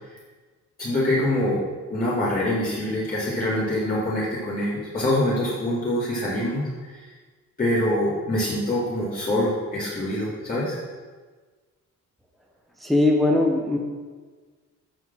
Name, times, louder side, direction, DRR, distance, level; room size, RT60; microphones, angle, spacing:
voice 1, 0.8-1.6 1.9-6.6 7.6-10.8, left 1 dB, 30° left, -10 dB, 4.0 m, -24 dB
voice 2, 12.8-13.8, left 2 dB, ahead, 0 dB, 1.4 m, -20 dB
14.5 x 5.4 x 6.1 m, 1.4 s
cardioid pair, 135°, 31 cm